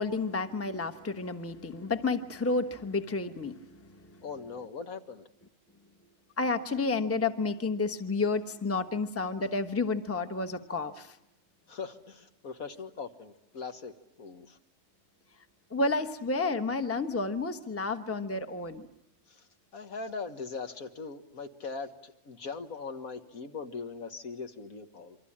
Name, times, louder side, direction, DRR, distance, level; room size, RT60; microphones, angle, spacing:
voice 1, 0.0-4.2 6.4-11.2 15.7-18.9, left 3 dB, 10° left, 8 dB, 1.0 m, -31 dB
voice 2, 4.2-5.2 11.7-13.9 14.2-14.6 19.3-19.5 19.7-25.2, left 4 dB, 65° left, 7 dB, 1.9 m, -40 dB
28.0 x 24.5 x 8.7 m, 0.85 s
omnidirectional pair, 1.6 m